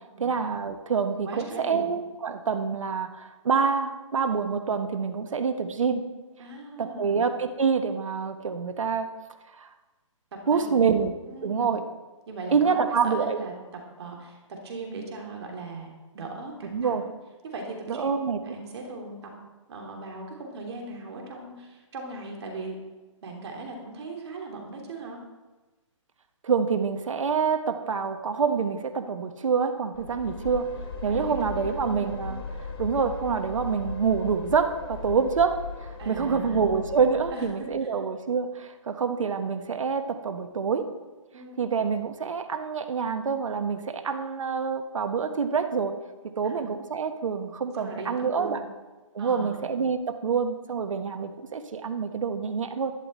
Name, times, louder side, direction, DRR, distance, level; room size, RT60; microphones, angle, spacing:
voice 1, 0.2-6.0 6.8-9.1 9.6-9.7 10.5-11.1 11.4-11.8 12.5-13.4 16.7-17.0 17.9-18.4 26.4-30.7 31.0-32.4 32.8-40.9 41.6-45.9 46.4-48.6 49.1-52.9, right 5 dB, 70° right, 7 dB, 1.2 m, -26 dB
voice 2, 1.2-1.9 6.4-7.2 10.5-11.7 12.3-13.5 14.0-17.1 17.4-18.1 18.4-19.3 19.7-22.8 23.2-25.2 31.1-32.0 36.0-36.7 37.3-37.9 41.3-41.6 46.4-46.6 47.8-48.6 49.2-49.6, right 3 dB, 55° right, 1 dB, 3.0 m, -39 dB
sound 1, 29.9-37.8, left 4 dB, 45° left, 1.5 m, -38 dB
12.0 x 10.5 x 4.3 m, 1.2 s
hypercardioid pair, 145°, 17 cm